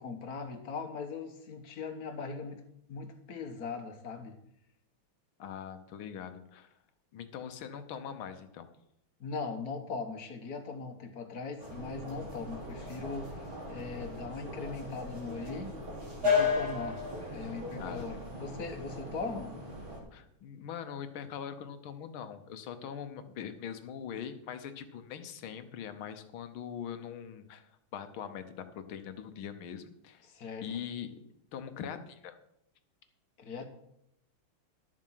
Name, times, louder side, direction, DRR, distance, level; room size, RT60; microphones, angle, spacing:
voice 1, 0.0-2.6 2.9-4.4 9.2-13.3 13.7-15.7 16.2-17.0 17.3-19.6 30.2-30.7 33.4-33.7, left 4 dB, 50° left, 7 dB, 1.5 m, -39 dB
voice 2, 5.4-6.7 7.1-8.7 17.8-18.1 20.1-30.2 30.6-31.1 31.5-32.4, left 8 dB, 75° left, 9 dB, 1.8 m, -42 dB
sound 1, 11.6-20.0, left 4 dB, 70° right, 4.4 m, -35 dB
12.0 x 7.5 x 5.7 m, 0.78 s
omnidirectional pair, 2.3 m